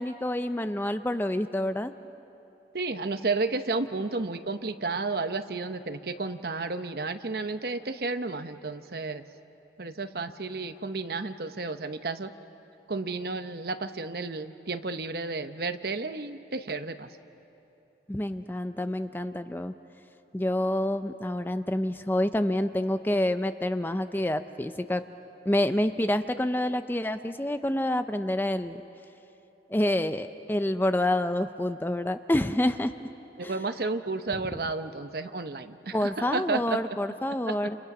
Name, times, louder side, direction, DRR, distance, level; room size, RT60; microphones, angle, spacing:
voice 1, 0.0-1.9 18.1-19.7 20.3-25.0 25.5-28.8 29.7-32.9 33.4-33.5 35.9-37.8, left 1 dB, 10° left, 10 dB, 0.5 m, -27 dB
voice 2, 2.7-9.2 9.8-12.3 12.9-17.1 33.4-37.0 37.5-37.6, right 3 dB, 55° right, 9 dB, 0.9 m, -32 dB
29.5 x 29.0 x 6.1 m, 2.9 s
head